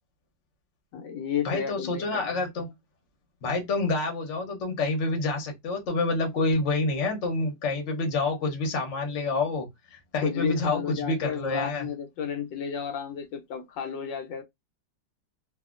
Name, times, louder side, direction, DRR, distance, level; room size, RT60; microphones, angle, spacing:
voice 1, 0.9-2.2 10.2-14.4, left 7 dB, 80° left, 1.3 m, -32 dB
voice 2, 1.4-2.7 3.4-11.9, left 3 dB, 50° left, 1.0 m, -28 dB
2.7 x 2.7 x 2.4 m
omnidirectional pair, 2.0 m